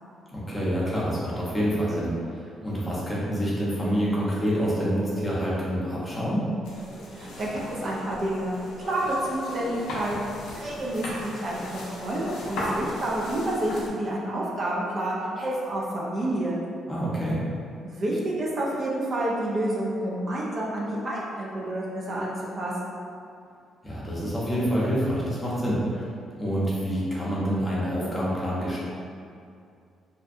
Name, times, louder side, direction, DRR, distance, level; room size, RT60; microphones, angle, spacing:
voice 1, 0.3-6.5 16.9-17.4 23.8-26.0 26.4-28.8, equal, 20° left, -7 dB, 0.7 m, -27 dB
sound 1, 6.6-13.9, left 1 dB, 85° left, 0.4 m, -36 dB
voice 2, 7.1-8.5 8.9-16.6 17.8-23.0, right 1 dB, 50° right, -4 dB, 0.5 m, -29 dB
2.6 x 2.1 x 2.5 m, 2.4 s
cardioid pair, 90°, 0 cm